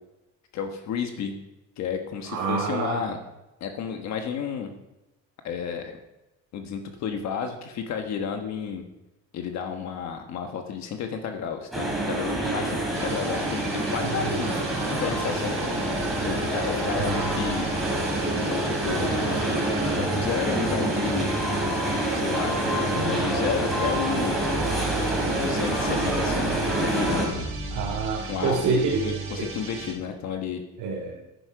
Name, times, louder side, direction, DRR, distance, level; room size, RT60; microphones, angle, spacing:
voice 1, 0.5-1.3 1.8-3.2 3.6-4.7 5.4-6.0 6.5-8.8 9.3-14.5 14.9-15.7 16.2-17.7 18.4-19.6 20.0-21.3 22.1-24.4 25.3-27.5 28.3-28.7 29.0-30.6, left 7 dB, 60° left, 5 dB, 1.2 m, -32 dB
voice 2, 2.3-3.0 17.1-17.2 27.7-29.5 30.8-31.1, right 4 dB, 70° right, -3 dB, 1.9 m, -27 dB
sound 1, 11.7-27.3, right 1 dB, ahead, 3.2 m, -27 dB
sound 2, 12.9-29.9, right 3 dB, 40° right, 2.8 m, -35 dB
10.5 x 9.9 x 4.6 m, 0.97 s
cardioid pair, 140°, 31 cm